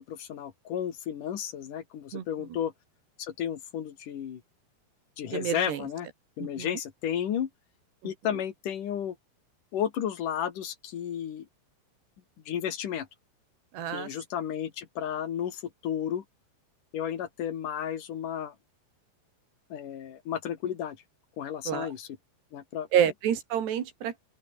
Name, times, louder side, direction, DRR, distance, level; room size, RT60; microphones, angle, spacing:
voice 1, 0.0-2.7 3.2-4.4 5.2-6.1 6.4-7.5 8.0-9.2 9.7-11.5 12.5-13.1 13.9-16.2 16.9-18.5 19.7-21.0 21.4-22.2 22.5-22.9, left 9 dB, 55° left, 3.3 m, -33 dB
voice 2, 5.3-5.8 6.6-6.7 13.7-14.1 21.7-21.9 22.9-24.2, right 9 dB, 80° right, 4.6 m, -28 dB
open air
omnidirectional pair, 4.8 m